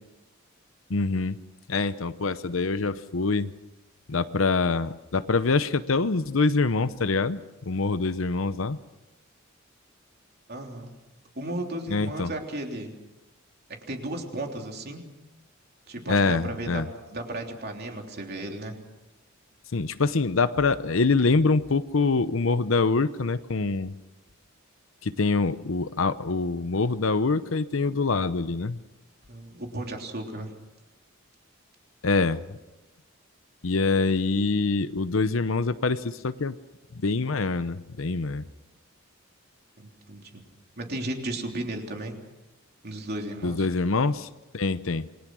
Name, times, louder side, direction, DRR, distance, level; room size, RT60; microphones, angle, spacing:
voice 1, 0.9-1.4 1.7-3.5 4.1-8.8 11.9-12.3 16.1-16.9 19.7-23.9 25.0-28.8 32.0-32.6 33.6-36.6 36.9-38.4 43.4-44.3 44.5-45.1, left 3 dB, 70° left, 13 dB, 0.8 m, -25 dB
voice 2, 10.5-10.9 11.3-12.9 13.9-15.0 15.9-16.8 17.1-18.8 29.3-30.5 39.8-40.4 40.8-42.1 42.8-43.7, right 1 dB, 50° right, 2 dB, 3.4 m, -34 dB
28.0 x 21.5 x 6.3 m, 1.0 s
head